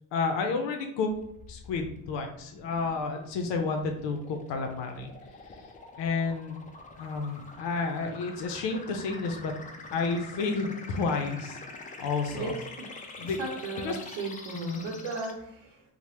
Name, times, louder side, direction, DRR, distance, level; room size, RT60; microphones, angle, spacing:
voice 1, 0.1-1.1 1.5-5.7 6.0-9.5 9.9-11.6 12.0-12.5 13.2-13.4 13.7-14.0 14.5-14.8, left 4 dB, 75° left, 4 dB, 0.6 m, -31 dB
sound 1, 1.1-15.3, left 3 dB, 20° left, 0.3 m, -46 dB
voice 2, 13.2-15.8, right 3 dB, 80° right, -5 dB, 0.8 m, -36 dB
2.8 x 2.1 x 3.1 m, 0.72 s
cardioid pair, 95°, 44 cm